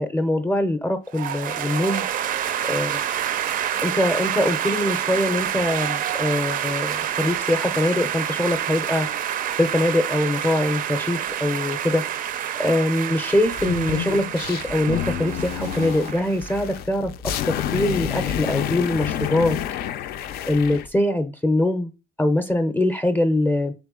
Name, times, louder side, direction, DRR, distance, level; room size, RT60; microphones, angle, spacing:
voice 1, 0.0-2.1 2.7-3.0 3.8-9.1 9.6-12.0 12.6-17.1 17.5-19.6 20.5-21.9 22.2-23.7, left 1 dB, 10° left, 0.5 m, -23 dB
sound 1, 1.1-16.6, right 10 dB, 55° right, 0.4 m, -28 dB
sound 2, 13.5-20.9, left 10 dB, 65° left, 0.4 m, -29 dB
3.5 x 3.3 x 3.6 m
cardioid pair, 110°, 17 cm